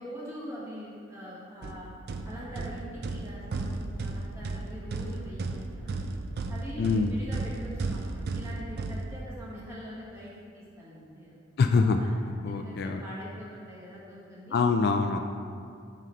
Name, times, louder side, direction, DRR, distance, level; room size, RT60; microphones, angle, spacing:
voice 1, 0.0-1.9 2.2-6.0 6.5-11.4 12.0-12.1 12.4-14.6, equal, 15° right, -7 dB, 1.4 m, -43 dB
sound 1, 1.6-9.6, right 3 dB, 50° right, 0.4 m, -35 dB
voice 2, 6.8-7.1 11.6-12.0 12.4-13.0 14.5-15.2, left 4 dB, 50° left, 5 dB, 0.3 m, -24 dB
7.5 x 5.5 x 3.2 m, 2.3 s
head